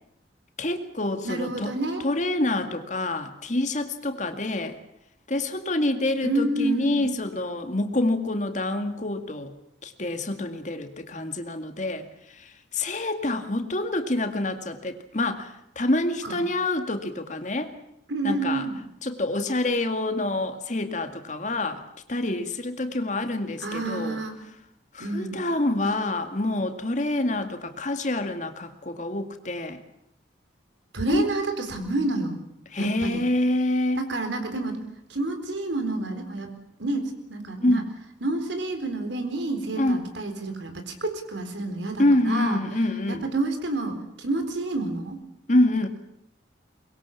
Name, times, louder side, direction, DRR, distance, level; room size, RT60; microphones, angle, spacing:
voice 1, 0.6-1.7 2.0-4.8 5.3-9.5 9.8-12.0 12.7-15.5 15.8-17.7 18.2-18.6 19.0-21.8 22.1-24.2 24.9-29.8 31.1-31.3 32.7-34.0 37.6-37.9 39.8-40.0 42.0-43.3 45.5-45.9, left 1 dB, 45° left, 7 dB, 2.1 m, -26 dB
voice 2, 1.2-2.0 6.2-7.1 16.2-16.4 18.1-18.8 23.6-24.4 25.0-25.4 30.9-32.4 32.8-33.2 34.0-34.8 35.1-36.5 36.8-37.8 38.2-42.6 43.1-45.2, right 2 dB, 90° right, 6 dB, 4.1 m, -29 dB
23.5 x 21.5 x 7.3 m, 0.78 s
head